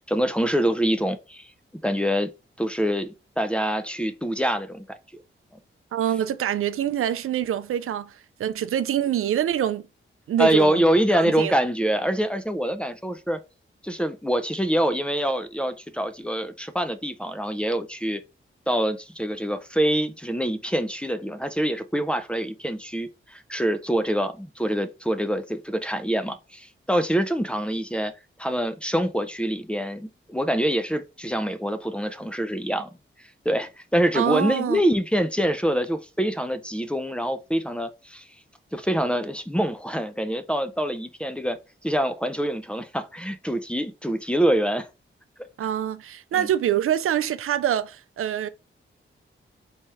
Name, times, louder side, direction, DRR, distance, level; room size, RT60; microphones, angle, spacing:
voice 1, 0.0-1.5 1.8-2.3 2.6-3.1 3.4-5.0 10.4-13.4 13.8-18.2 18.7-28.1 28.4-32.9 33.5-38.3 38.7-41.6 41.8-44.9 46.4-46.5, equal, 5° left, 0.4 m, -25 dB
voice 2, 5.9-9.9 10.3-10.8 11.2-11.6 34.1-34.8 45.6-48.5, right 10 dB, 90° right, 0.4 m, -25 dB
4.3 x 3.2 x 3.4 m
wide cardioid pair, 125°, 21 cm